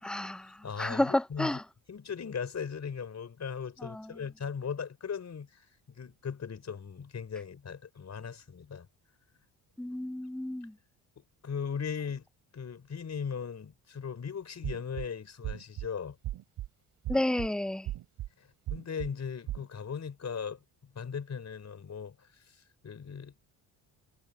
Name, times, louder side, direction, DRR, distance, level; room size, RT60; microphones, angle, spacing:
voice 1, 0.0-0.5 0.8-1.6 3.8-4.0 9.8-10.7 17.1-17.9, left 1 dB, ahead, 0.4 m, -30 dB
voice 2, 0.6-1.6 1.9-8.9 11.2-12.3 12.5-16.2 18.4-23.4, left 6 dB, 40° left, 4.9 m, -38 dB
sound 1, 14.6-15.1 15.4-15.9 16.2-16.7 17.0-17.5 17.9-18.3 18.7-19.1 19.5-19.7, right 14 dB, 80° right, 2.8 m, -36 dB
cardioid pair, 95°, 42 cm